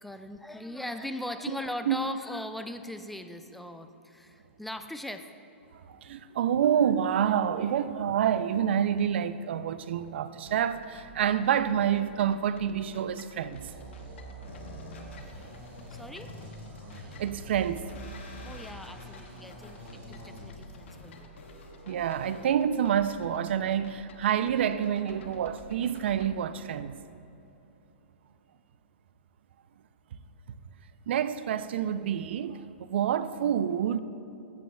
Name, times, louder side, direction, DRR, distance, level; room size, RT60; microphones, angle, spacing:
voice 1, 0.0-5.3 15.9-16.3 18.4-21.3, left 1 dB, ahead, 0.4 m, -39 dB
voice 2, 5.9-13.7 17.2-17.9 21.9-27.0 31.1-34.0, right 9 dB, 65° right, 0.4 m, -28 dB
sound 1, 10.5-26.3, left 2 dB, 70° left, 0.9 m, -52 dB
sound 2, 13.5-20.4, right 2 dB, 30° right, 2.0 m, -46 dB
sound 3, 14.4-22.4, left 2 dB, 90° left, 1.7 m, -49 dB
14.0 x 9.1 x 2.3 m
hypercardioid pair, 130°, 7 cm